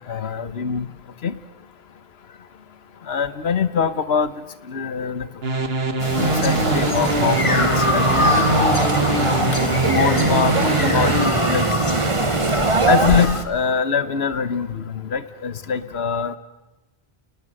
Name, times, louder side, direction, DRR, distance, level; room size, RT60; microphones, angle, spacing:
voice 1, 0.1-0.9 1.2-1.3 3.1-4.3 4.7-5.3 6.2-8.8 9.8-11.6 12.9-16.4, left 6 dB, 85° left, 14 dB, 1.3 m, -23 dB
sound 1, 5.4-11.3, right 2 dB, 75° right, 1.9 m, -23 dB
sound 2, 6.0-13.4, left 2 dB, 30° left, 1.5 m, -25 dB
sound 3, 6.2-13.3, right 3 dB, 30° right, 1.2 m, -22 dB
29.5 x 19.5 x 7.7 m, 1.1 s
omnidirectional pair, 1.0 m